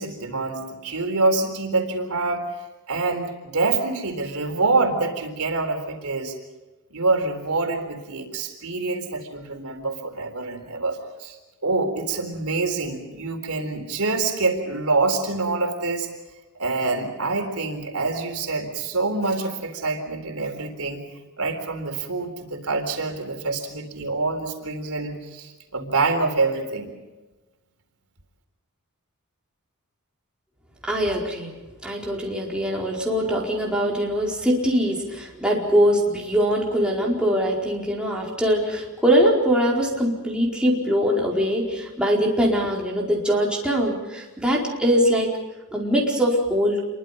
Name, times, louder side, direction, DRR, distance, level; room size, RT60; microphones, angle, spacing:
voice 1, 0.0-2.4 2.9-6.3 6.9-11.4 11.6-16.1 16.6-21.0 21.4-26.9, right 3 dB, 80° right, 4 dB, 4.0 m, -26 dB
voice 2, 30.9-31.5 31.8-45.3 45.7-46.8, equal, 5° right, -3 dB, 4.7 m, -22 dB
28.0 x 23.0 x 5.3 m, 1.1 s
head